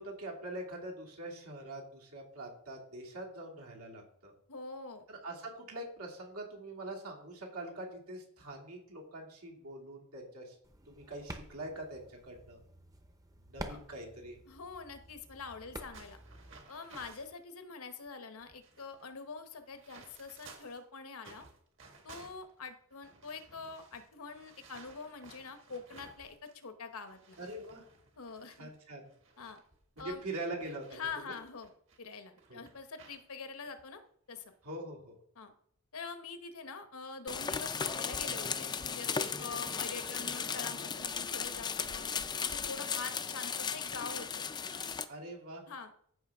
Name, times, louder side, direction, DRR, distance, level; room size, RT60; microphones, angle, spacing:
voice 1, 0.0-4.3 5.1-10.6 10.9-12.6 13.4-14.4 27.4-27.8 28.6-29.1 30.0-30.9 31.3-31.4 32.5-32.6 34.6-35.2 45.1-45.7, right 1 dB, 85° right, 0 dB, 2.4 m, -43 dB
voice 2, 4.5-5.0 13.7-13.8 14.5-16.2 16.7-21.4 22.0-27.4 28.2-28.7 29.4-29.6 30.0-30.2 30.9-34.0 34.3-34.4 35.4-35.5 35.9-42.1 42.4-44.4 45.7-45.9, left 4 dB, 75° left, 8 dB, 0.9 m, -45 dB
sound 1, 10.6-16.6, right 1 dB, 15° right, 0.7 m, -49 dB
sound 2, 15.9-17.4 18.1-18.2 18.4-20.8 21.2-26.6 26.9-32.0 32.4-33.2 33.6-33.8 34.3-34.6, right 4 dB, 55° right, 1.6 m, -57 dB
sound 3, 37.3-45.0, left 6 dB, 20° left, 0.3 m, -36 dB
13.5 x 5.6 x 3.5 m, 0.65 s
head